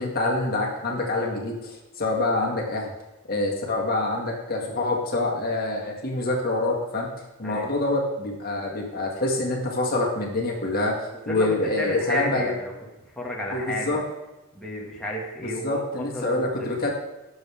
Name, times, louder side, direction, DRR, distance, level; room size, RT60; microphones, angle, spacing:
voice 1, 0.0-2.9 3.3-7.1 7.4-11.0 11.3-12.5 13.5-14.0 15.4-16.9, left 2 dB, 45° left, -1 dB, 2.0 m, -26 dB
voice 2, 11.8-12.7 13.2-14.0 14.5-16.7, equal, 5° left, -3 dB, 1.9 m, -32 dB
18.5 x 7.3 x 3.6 m, 1.0 s
head